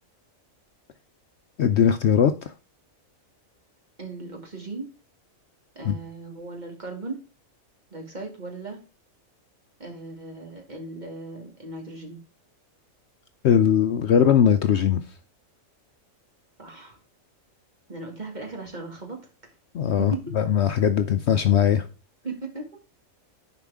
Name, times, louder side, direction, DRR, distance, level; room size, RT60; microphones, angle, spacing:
voice 1, 1.6-2.5 5.8-6.0 13.4-15.0 19.7-21.9, left 8 dB, 65° left, 0.8 m, -20 dB
voice 2, 4.0-4.9 5.7-7.2 7.9-8.8 9.8-12.2 16.6-17.0 17.9-19.2 20.0-20.3 22.2-22.7, right 3 dB, 30° right, 2.4 m, -37 dB
10.5 x 5.0 x 3.5 m
omnidirectional pair, 1.4 m